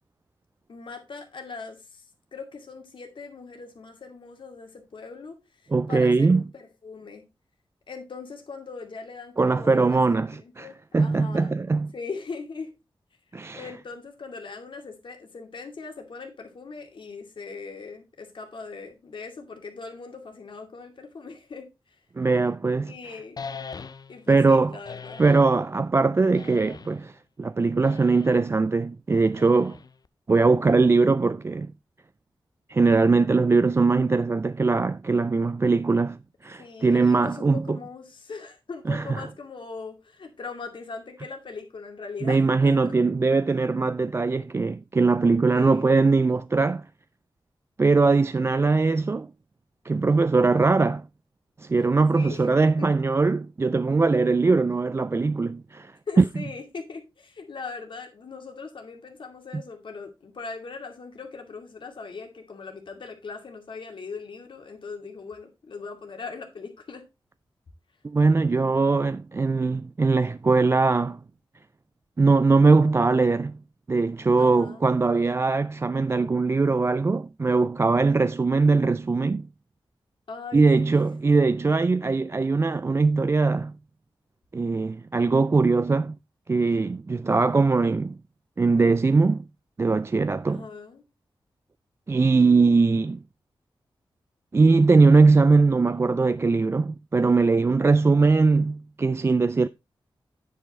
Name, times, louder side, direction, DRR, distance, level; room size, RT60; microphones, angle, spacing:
voice 1, 0.7-2.0 2.3-5.4 5.9-7.3 7.9-11.7 11.9-12.7 13.5-21.7 22.8-23.4 24.1-25.2 36.6-43.0 45.5-45.9 48.5-48.7 52.1-52.5 52.8-52.9 56.1-67.1 74.4-74.8 80.3-81.0 81.3-81.4 90.5-91.0, left 4 dB, 65° left, 2.3 m, -40 dB
voice 2, 5.7-6.4 9.4-10.7 10.9-11.9 13.3-13.7 22.2-22.9 24.3-24.8 25.2-29.8 30.3-31.7 32.7-37.8 38.9-39.3 42.2-46.8 47.8-49.3 49.8-51.1 51.6-56.2 59.5-59.6 68.0-71.2 72.2-73.6 73.9-79.5 80.5-83.7 84.5-86.2 86.5-88.2 88.6-89.5 89.8-90.6 92.1-93.2 94.5-99.7, right 4 dB, 30° right, 0.3 m, -21 dB
sound 1, 23.4-24.3 24.8-25.5 26.3-27.1 27.8-28.5 29.3-30.1, left 5 dB, 50° left, 0.6 m, -41 dB
9.5 x 5.5 x 4.1 m
wide cardioid pair, 95°, 9 cm